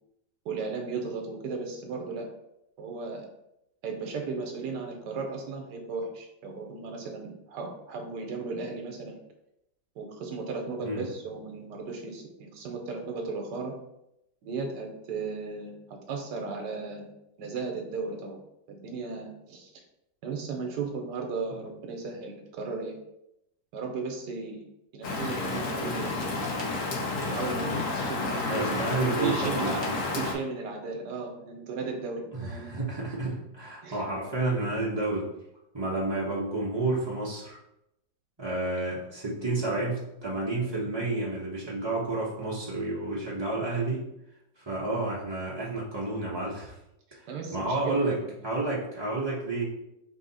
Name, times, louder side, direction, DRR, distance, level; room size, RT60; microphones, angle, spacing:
voice 1, 0.4-2.3 2.8-3.3 3.8-9.2 10.0-13.7 14.4-17.1 17.4-18.4 18.7-19.7 20.2-23.0 23.7-24.6 24.9-26.3 27.2-28.7 29.0-32.8 33.8-34.0 47.3-48.3, right 4 dB, 75° right, 3 dB, 1.3 m, -36 dB
Rain, 25.0-30.3, left 2 dB, 55° left, 1.0 m, -30 dB
voice 2, 28.5-30.0 32.3-35.3 35.7-37.6 38.4-44.1 44.6-46.8 47.1-49.6, right 2 dB, 45° right, -7 dB, 0.3 m, -30 dB
4.7 x 2.7 x 4.0 m, 0.84 s
omnidirectional pair, 1.9 m